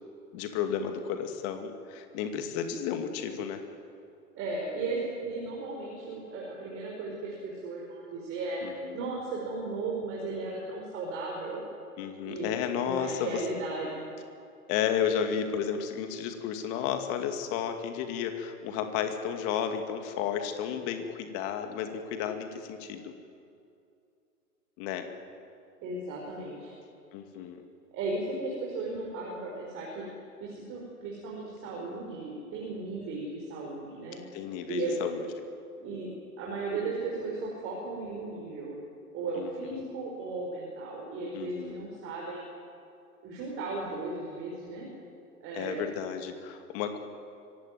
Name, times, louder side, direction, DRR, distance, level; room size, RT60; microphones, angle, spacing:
voice 1, 0.3-3.6 8.6-9.0 12.0-13.4 14.7-23.1 24.8-25.1 27.1-27.6 34.3-35.2 39.4-39.5 41.3-41.8 45.5-47.0, left 8 dB, 30° left, 7 dB, 2.3 m, -32 dB
voice 2, 4.3-11.7 12.2-14.0 25.8-26.7 27.9-30.0 30.4-34.2 34.7-35.0 35.8-36.1 36.4-38.8 39.1-42.4 43.2-44.9 45.4-45.8, right 3 dB, 25° right, -3 dB, 4.8 m, -36 dB
24.5 x 17.0 x 9.3 m, 2.5 s
figure-of-eight pair, 110°, 46 cm